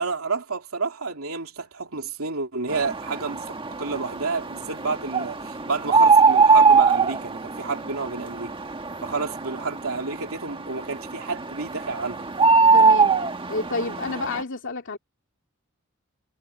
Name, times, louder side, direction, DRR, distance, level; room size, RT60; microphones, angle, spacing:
voice 1, 0.0-3.4 3.8-8.5 9.0-12.3, right 4 dB, 75° right, 3.3 m, -30 dB
sound 1, 2.7-14.4, right 4 dB, 25° right, 1.5 m, -22 dB
voice 2, 12.7-13.1 13.5-15.0, left 3 dB, 60° left, 2.7 m, -29 dB
head